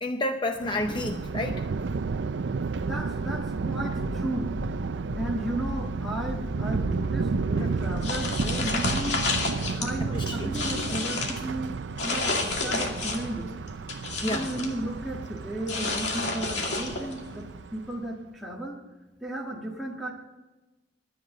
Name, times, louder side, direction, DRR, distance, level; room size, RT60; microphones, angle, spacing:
voice 1, 0.0-1.6 7.3-7.7 8.6-8.7 10.1-10.5 12.1-12.2 14.2-14.5, left 1 dB, 25° left, 5 dB, 0.7 m, -31 dB
Thunder, 0.6-18.0, right 4 dB, 75° right, 0.5 m, -32 dB
voice 2, 2.8-4.5 5.2-9.2 9.7-13.5 14.2-18.8 19.2-20.1, right 1 dB, ahead, -1 dB, 1.7 m, -34 dB
sound 1, 3.9-9.2, left 2 dB, 90° left, 0.9 m, -40 dB
sound 2, 8.0-9.9 10.3-11.4 12.0-13.3 13.7-14.7 15.7-17.2, left 3 dB, 70° left, 2.3 m, -30 dB
23.5 x 9.6 x 3.9 m, 1.1 s
head